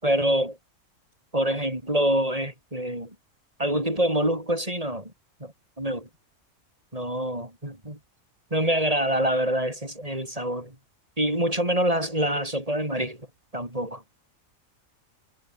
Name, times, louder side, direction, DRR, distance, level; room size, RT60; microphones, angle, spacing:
voice 1, 0.0-0.6 1.3-3.1 3.6-5.1 5.4-5.5 5.8-6.1 6.9-8.0 8.5-10.7 11.2-13.2 13.5-14.0, right 1 dB, 25° right, 6.8 m, -26 dB
omnidirectional pair, 1.4 m